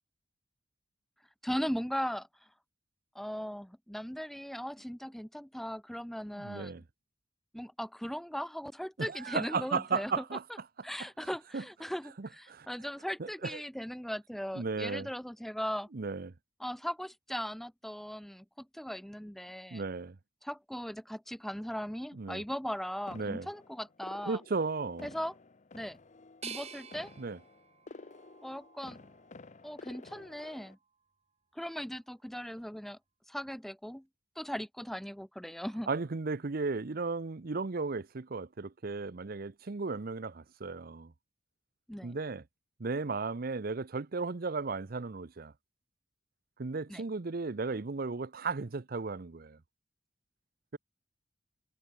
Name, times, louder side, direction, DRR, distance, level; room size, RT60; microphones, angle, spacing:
voice 1, 1.4-2.3 3.1-6.7 7.5-10.2 10.8-15.9 16.6-19.8 20.4-24.4 25.0-25.3 25.7-26.0 26.4-27.1 28.4-29.0 29.6-30.8 31.5-33.0 33.3-34.0 34.4-35.9 41.9-42.2 46.9-47.0, equal, ahead, 0.5 m, -38 dB
voice 2, 6.3-6.8 9.0-10.4 11.5-11.6 12.2-12.7 13.2-13.6 14.5-15.1 15.9-16.3 19.7-20.2 22.1-22.4 23.1-23.5 24.3-25.1 27.2-27.4 35.9-41.1 42.0-42.4 42.8-45.5 46.6-49.6, right 4 dB, 55° right, 0.7 m, -35 dB
sound 1, 23.1-30.7, left 3 dB, 40° left, 0.8 m, -52 dB
sound 2, 26.4-29.3 29.9-30.7, right 7 dB, 35° right, 3.7 m, -50 dB
head